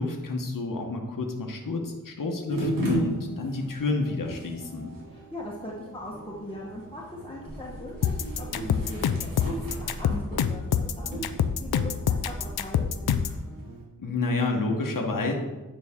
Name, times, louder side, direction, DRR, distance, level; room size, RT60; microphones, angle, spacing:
voice 1, 0.0-4.9 14.0-15.3, left 3 dB, 60° left, 2 dB, 1.1 m, -29 dB
sound 1, 2.5-13.8, right 1 dB, 65° right, 2.4 m, -36 dB
voice 2, 5.1-11.3 11.6-12.8, left 1 dB, 15° left, -5 dB, 1.2 m, -40 dB
sound 2, 7.5-12.8, right 1 dB, 25° right, 1.6 m, -43 dB
sound 3, 8.0-13.4, left 8 dB, 85° left, 0.5 m, -26 dB
9.5 x 5.5 x 3.6 m, 1.1 s
wide cardioid pair, 75°, 36 cm